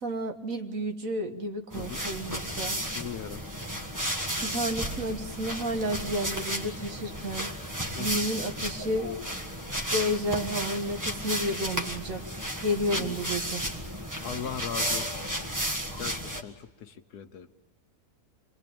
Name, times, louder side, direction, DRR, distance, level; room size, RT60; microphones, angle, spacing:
voice 1, 0.0-2.8 4.4-7.5 8.0-9.1 9.9-12.3 12.6-13.6, equal, 55° right, 5 dB, 1.9 m, -31 dB
sound 1, 1.7-16.4, equal, 10° right, 1.6 m, -33 dB
voice 2, 2.8-3.4 7.9-8.3 13.0-13.2 14.2-15.7 16.0-17.5, left 8 dB, 70° left, 9 dB, 1.6 m, -39 dB
27.5 x 21.0 x 8.8 m, 1.2 s
omnidirectional pair, 1.7 m